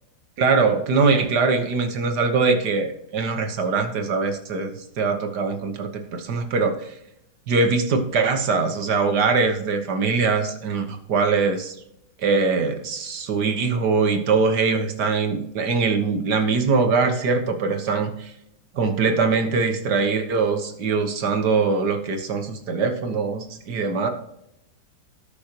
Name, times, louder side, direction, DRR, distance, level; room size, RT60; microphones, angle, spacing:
voice 1, 0.4-6.9 7.5-11.7 12.2-18.3 18.7-24.1, right 4 dB, 60° right, 6 dB, 1.7 m, -22 dB
18.0 x 6.8 x 3.0 m, 0.80 s
omnidirectional pair, 2.1 m